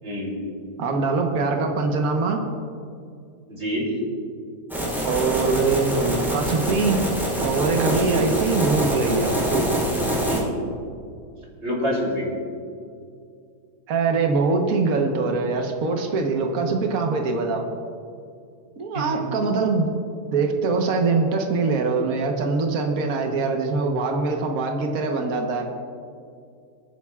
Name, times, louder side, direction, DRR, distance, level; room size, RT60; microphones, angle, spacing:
voice 1, 0.0-0.4 3.5-3.9 7.9-8.2 10.2-10.7 11.6-12.3 18.9-19.2, equal, 40° right, -3 dB, 3.6 m, -27 dB
voice 2, 0.8-2.4 5.0-7.0 7.4-9.7 13.9-17.6 18.8-19.9 20.3-25.6, right 4 dB, 60° right, 3 dB, 1.5 m, -23 dB
sound 1, 4.7-10.4, right 1 dB, ahead, 3.2 m, -25 dB
26.5 x 10.0 x 2.4 m, 2.3 s
omnidirectional pair, 1.8 m